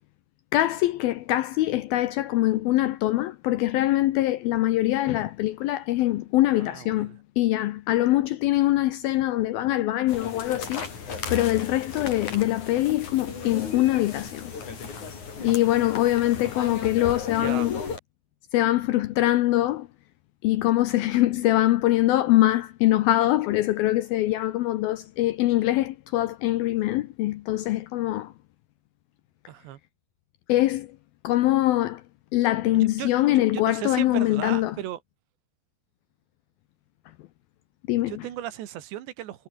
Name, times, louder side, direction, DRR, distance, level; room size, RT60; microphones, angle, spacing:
voice 1, 0.5-10.8 11.3-14.5 15.4-17.8 18.5-19.9 20.4-28.3 30.5-31.0 31.2-32.0 32.3-34.8 37.9-38.3, left 15 dB, 80° left, 2.2 m, -23 dB
voice 2, 6.5-7.2 17.4-17.7 29.5-29.8 32.7-35.0 38.1-39.5, right 13 dB, 80° right, 3.8 m, -36 dB
sound 1, 10.1-18.0, left 5 dB, 45° left, 5.5 m, -35 dB
omnidirectional pair, 5.1 m